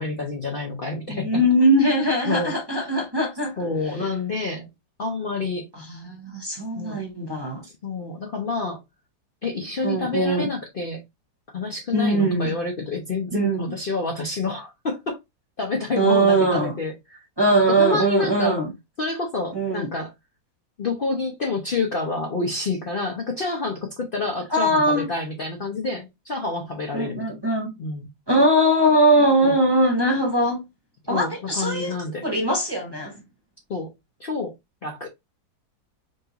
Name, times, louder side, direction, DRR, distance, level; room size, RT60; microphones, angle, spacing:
voice 1, 0.0-1.4 2.3-2.9 3.6-4.7 5.0-5.7 6.7-7.0 7.6-8.8 9.4-11.0 11.5-15.2 15.6-17.2 17.5-18.6 19.0-20.1 20.8-27.3 27.8-28.1 29.4-29.5 31.1-32.3 33.7-33.9 34.2-34.5 34.8-35.1, left 3 dB, 70° left, 0.5 m, -28 dB
voice 2, 1.1-3.6 5.7-7.6 9.8-10.5 11.9-12.5 13.3-13.7 15.9-16.7 17.4-18.7 19.5-19.9 24.5-25.1 26.9-27.7 28.3-30.6 31.1-31.9 32.2-33.2, right 1 dB, 15° right, 0.8 m, -21 dB
5.2 x 2.4 x 2.8 m
omnidirectional pair, 2.0 m